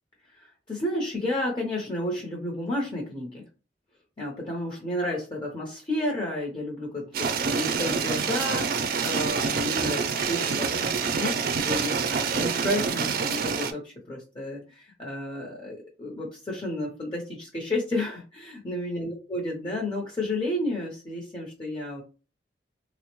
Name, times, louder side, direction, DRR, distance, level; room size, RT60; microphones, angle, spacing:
voice 1, 0.3-3.4 4.2-22.0, left 1 dB, 25° left, -2 dB, 0.7 m, -31 dB
sound 1, 7.1-13.7, right 5 dB, 55° right, 0.4 m, -27 dB
3.5 x 2.0 x 2.9 m, 0.35 s
head